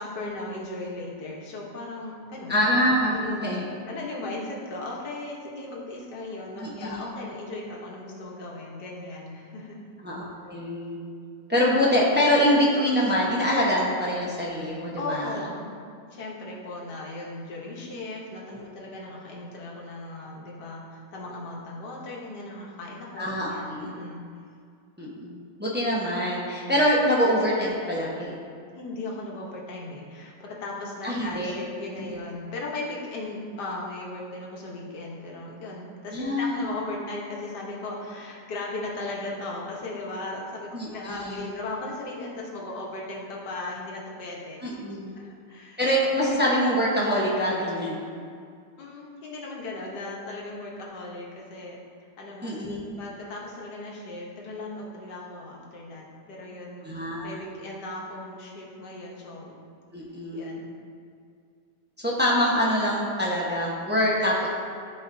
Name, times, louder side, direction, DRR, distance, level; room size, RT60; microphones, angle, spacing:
voice 1, 0.0-2.5 3.1-3.5 3.9-9.8 14.7-15.7 16.1-24.2 28.7-44.6 45.1-45.8 48.8-51.8 52.2-52.5 53.0-59.5 60.3-60.7, left 2 dB, 70° left, -3 dB, 1.7 m, -37 dB
voice 2, 2.5-3.6 6.6-7.0 10.0-11.0 11.5-15.3 18.5-18.6 23.2-23.9 25.0-28.3 31.0-31.5 32.0-32.1 36.1-36.7 40.7-41.5 44.6-45.2 45.8-48.0 52.4-52.8 56.8-57.4 59.9-60.6 62.0-64.5, equal, 10° right, -5 dB, 0.6 m, -25 dB
12.0 x 4.7 x 2.7 m, 2.3 s
omnidirectional pair, 1.9 m